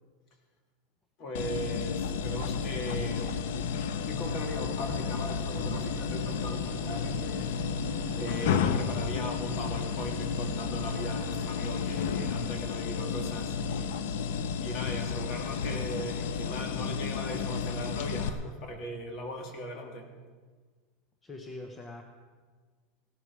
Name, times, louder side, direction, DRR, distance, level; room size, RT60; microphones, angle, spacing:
voice 1, 1.2-3.4 4.0-7.5 8.1-13.9 14.6-20.1, equal, 40° left, 3 dB, 2.6 m, -39 dB
sound 1, 1.3-18.3, left 6 dB, 75° left, 0.9 m, -32 dB
sound 2, 5.5-11.4, right 9 dB, 45° right, 0.8 m, -44 dB
voice 2, 21.2-22.0, left 2 dB, 15° left, 4 dB, 0.9 m, -42 dB
16.5 x 13.0 x 4.8 m, 1.4 s
supercardioid pair, 150°, 0 cm